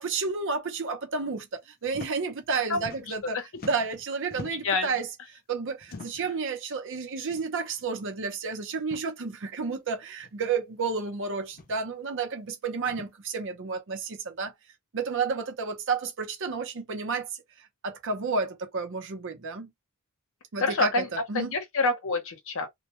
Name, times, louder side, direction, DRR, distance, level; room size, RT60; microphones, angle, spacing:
voice 1, 0.0-3.4 3.6-5.1 5.5-14.5 14.9-17.3 17.8-19.7 20.5-21.5, right 4 dB, 60° right, 0.7 m, -31 dB
sound 1, 1.9-2.1 2.4-3.3 3.5-4.8 5.8-6.4 7.3-7.5 7.8-7.9 8.8-9.1 10.2-10.3 11.5-11.8 12.8-13.1, left 3 dB, 40° left, 0.4 m, -44 dB
voice 2, 20.6-21.1 21.3-22.7, left 3 dB, 60° left, 0.8 m, -27 dB
2.2 x 2.1 x 2.9 m
head